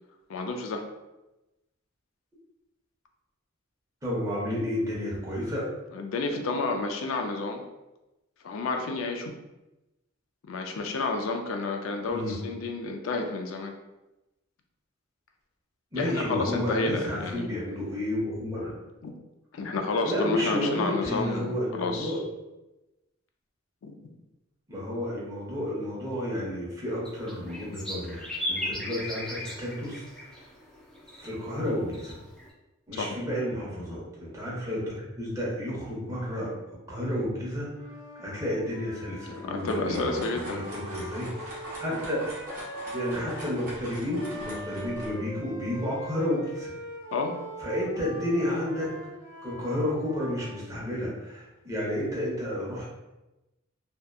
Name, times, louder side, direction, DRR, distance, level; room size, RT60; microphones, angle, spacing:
voice 1, 0.3-0.9 5.9-7.6 8.4-9.3 10.5-13.7 15.9-17.5 19.0-19.1 19.5-22.2 23.8-24.2 33.0-33.2 39.3-40.7 47.1-47.4, left 3 dB, 70° left, 4 dB, 0.4 m, -30 dB
voice 2, 4.0-5.7 12.1-12.4 15.9-18.7 20.0-22.3 24.7-30.1 31.2-32.1 32.9-36.5 36.9-37.7 38.1-41.5 41.8-42.3 42.9-46.7 47.6-48.9 49.4-52.8, left 1 dB, 15° right, -6 dB, 0.8 m, -31 dB
sound 1, 27.1-32.5, left 1 dB, 5° left, 0.3 m, -37 dB
Wind instrument woodwind instrument, 37.7-43.5 44.2-50.7, equal, 25° left, 1.1 m, -42 dB
sound 2, 39.3-45.1, right 1 dB, 45° right, 0.8 m, -42 dB
2.7 x 2.2 x 2.3 m, 1.0 s
head